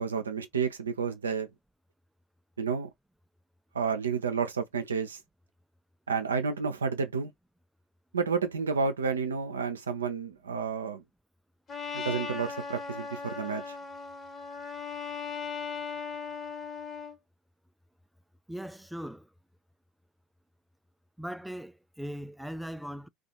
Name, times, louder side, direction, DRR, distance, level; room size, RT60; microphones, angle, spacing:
voice 1, 0.0-1.5 2.6-2.9 3.7-5.2 6.1-7.3 8.1-11.0 11.9-13.7, right 5 dB, 85° right, 0.5 m, -30 dB
Trumpet, 11.7-17.2, left 5 dB, 35° left, 1.2 m, -38 dB
voice 2, 18.5-19.3 21.2-23.1, equal, 5° right, 0.3 m, -39 dB
2.5 x 2.3 x 2.9 m
hypercardioid pair, 70°, 0 cm